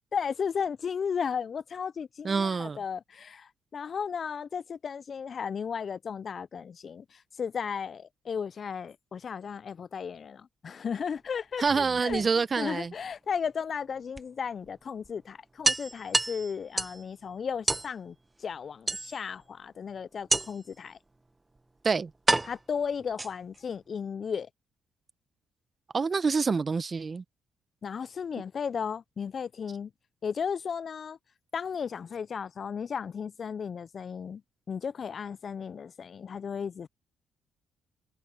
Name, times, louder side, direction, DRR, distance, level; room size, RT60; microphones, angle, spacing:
voice 1, 0.1-12.2 12.6-18.1 18.4-21.0 22.4-24.5 27.8-29.9 30.2-31.2 31.5-34.4 34.7-36.9, left 6 dB, 50° left, 0.3 m, -35 dB
voice 2, 2.2-2.8 11.6-12.9 21.8-22.1 25.9-27.2, right 5 dB, 35° right, 0.7 m, -27 dB
sound 1, 11.5-12.7 14.2-14.3 14.6-14.7 15.0-15.1 15.6-17.0 17.7-17.9 18.9-19.4 20.3-20.7 21.6-21.7 22.3-23.6, right 2 dB, 15° right, 1.1 m, -29 dB
cardioid pair, 90°, 0 cm